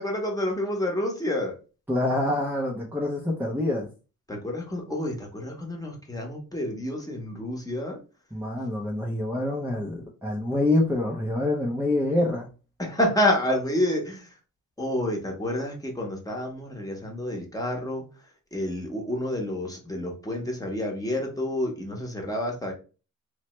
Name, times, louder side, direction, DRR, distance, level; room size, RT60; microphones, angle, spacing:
voice 1, 0.0-1.5 4.3-8.0 12.8-14.3 14.8-18.0 18.5-22.7, left 1 dB, 10° left, 0 dB, 1.0 m, -29 dB
voice 2, 1.9-3.9 8.3-12.5, left 1 dB, 5° right, -1 dB, 0.5 m, -26 dB
3.0 x 2.1 x 3.0 m, 0.34 s
cardioid pair, 95°, 35 cm